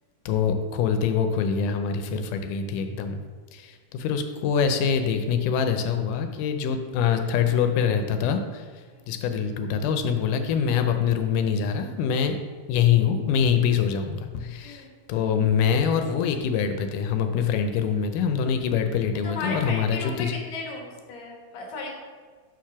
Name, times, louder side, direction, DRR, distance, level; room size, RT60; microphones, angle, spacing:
voice 1, 0.3-3.2 3.5-8.6 9.1-12.4 12.7-14.8 15.1-20.3, left 7 dB, 90° left, 7 dB, 2.1 m, -24 dB
voice 2, 19.2-20.3 20.5-21.9, left 3 dB, 55° left, -1 dB, 1.7 m, -35 dB
4.6 x 4.6 x 5.8 m, 1.5 s
omnidirectional pair, 3.6 m